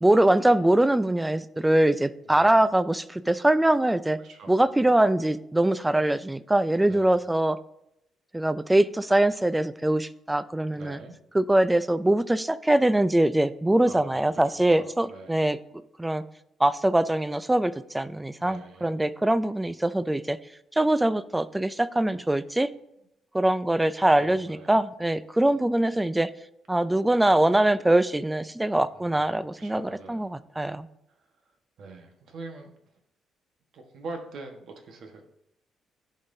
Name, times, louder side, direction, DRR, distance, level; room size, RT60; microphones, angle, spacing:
voice 1, 0.0-4.2 4.5-7.6 8.3-11.0 11.3-15.6 16.0-16.2 16.6-20.4 20.8-22.7 23.3-26.3 26.7-30.9, right 1 dB, 5° right, 15 dB, 0.3 m, -23 dB
voice 2, 2.2-2.6 4.2-4.9 6.9-7.2 10.7-11.1 13.8-14.3 14.5-15.5 18.4-19.0 24.2-24.8 28.9-30.3 31.8-32.7 33.7-35.3, right 3 dB, 60° right, 4 dB, 1.2 m, -44 dB
14.5 x 5.5 x 2.7 m, 0.82 s
cardioid pair, 150°, 0 cm